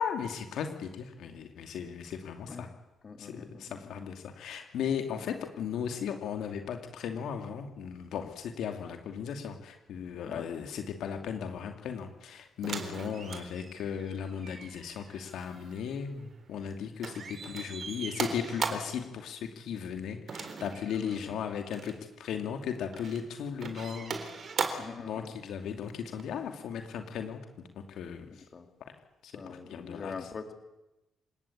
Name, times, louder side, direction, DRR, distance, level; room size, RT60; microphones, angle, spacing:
voice 1, 0.0-2.7 3.2-27.4 27.7-28.4 28.8-28.9 29.2-30.3, left 7 dB, 75° left, 5 dB, 2.6 m, -37 dB
voice 2, 3.0-3.8 5.1-5.3 10.3-10.5 21.0-21.3 24.8-25.3 28.5-28.7 29.3-30.5, left 4 dB, 40° left, 6 dB, 3.4 m, -43 dB
sound 1, 12.6-16.7 17.0-19.0 20.3-21.3 21.7-22.0 22.6-23.2 23.6-25.0 26.2-26.3, right 5 dB, 50° right, 4.0 m, -38 dB
28.5 x 18.5 x 8.6 m, 0.98 s
cardioid pair, 90°, 0 cm